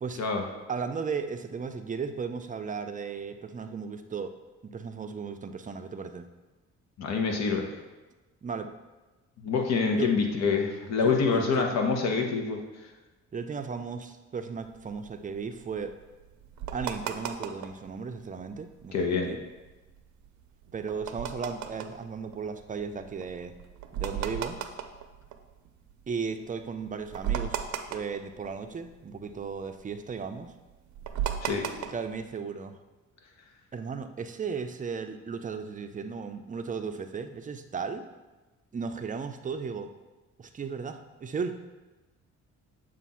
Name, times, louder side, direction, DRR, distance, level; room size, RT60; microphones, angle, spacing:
voice 1, 0.7-4.4 4.6-6.3 8.4-8.7 10.0-10.1 11.0-11.7 13.3-16.0 16.7-19.4 20.7-23.5 23.9-24.6 26.1-30.5 31.8-32.8 33.7-38.0 38.7-39.9 40.4-41.6, right 5 dB, 25° right, 7 dB, 0.5 m, -35 dB
voice 2, 7.0-7.7 9.4-12.6 18.9-19.3 31.4-31.6, left 5 dB, 60° left, 2 dB, 1.1 m, -26 dB
sound 1, 14.6-17.9 18.3-18.4 18.5-18.9 19.3-26.0 26.5-26.6 26.8-28.9 29.2-32.2, right 9 dB, 70° right, 0.6 m, -36 dB
7.2 x 2.5 x 5.5 m, 1.2 s
cardioid pair, 90°, 30 cm